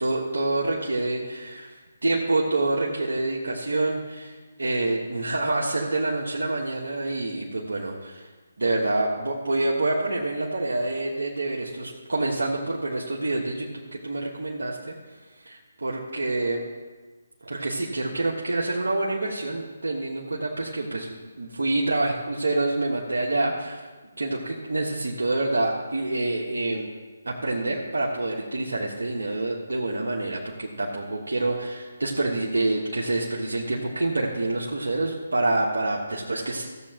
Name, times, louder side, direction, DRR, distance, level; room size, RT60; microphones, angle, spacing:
voice 1, 0.0-1.7 2.0-8.3 8.6-14.9 15.3-16.6 17.4-23.8 24.2-26.9 27.2-36.7, right 2 dB, 75° right, -3 dB, 1.4 m, -27 dB
15.5 x 7.5 x 3.0 m, 1.3 s
figure-of-eight pair, 145°, 0 cm